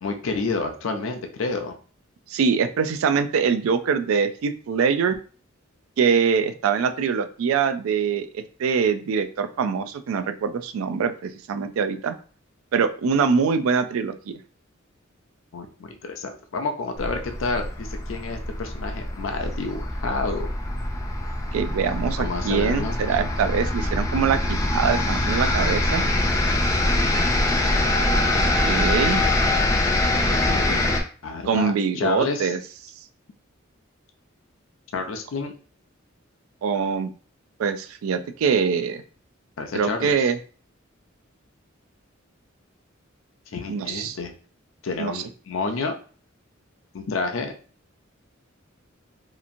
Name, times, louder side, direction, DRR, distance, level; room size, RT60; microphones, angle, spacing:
voice 1, 0.0-1.7 15.5-20.5 22.2-23.0 30.1-32.5 34.9-35.5 39.6-40.2 43.5-44.3 44.8-46.0 46.9-47.5, left 3 dB, 70° left, 5 dB, 0.5 m, -29 dB
voice 2, 2.3-5.2 6.0-12.1 12.7-14.3 21.5-26.0 28.3-29.2 31.5-32.6 36.6-37.1 37.6-39.0 39.7-40.4 43.7-44.2 45.0-45.2, right 6 dB, 85° right, 10 dB, 0.3 m, -23 dB
sound 1, 17.0-31.0, left 1 dB, 15° left, 0.4 m, -24 dB
2.9 x 2.5 x 2.5 m, 0.41 s
head